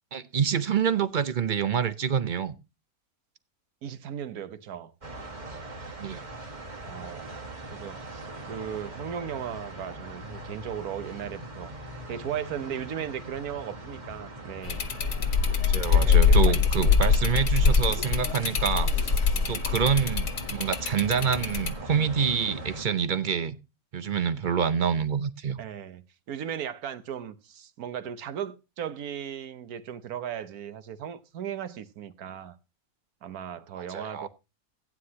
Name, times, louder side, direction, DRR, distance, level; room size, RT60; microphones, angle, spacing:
voice 1, 0.1-2.5 6.0-6.2 10.4-10.5 15.7-18.9 19.5-23.6 23.9-25.6 33.8-34.3, right 7 dB, 50° right, 0.6 m, -27 dB
voice 2, 3.8-4.9 6.8-11.7 12.1-14.8 15.4-17.2 19.3-19.5 25.6-26.0 26.3-32.6 33.2-34.3, right 9 dB, 80° right, 1.4 m, -37 dB
sound 1, 5.0-22.8, right 1 dB, 30° right, 1.8 m, -41 dB
sound 2, 14.6-21.7, left 6 dB, 55° left, 1.2 m, -23 dB
15.5 x 9.6 x 2.8 m
omnidirectional pair, 1.6 m